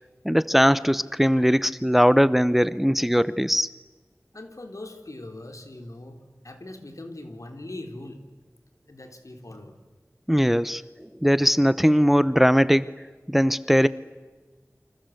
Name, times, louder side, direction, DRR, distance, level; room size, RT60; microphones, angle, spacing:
voice 1, 0.2-3.7 10.3-10.8 11.2-12.9 13.3-13.9, equal, 5° right, 16 dB, 0.8 m, -20 dB
voice 2, 4.3-6.2 6.4-8.2 8.9-9.7, left 1 dB, 70° left, 5 dB, 3.8 m, -40 dB
29.0 x 25.5 x 7.9 m, 1.3 s
wide cardioid pair, 40°, 6 cm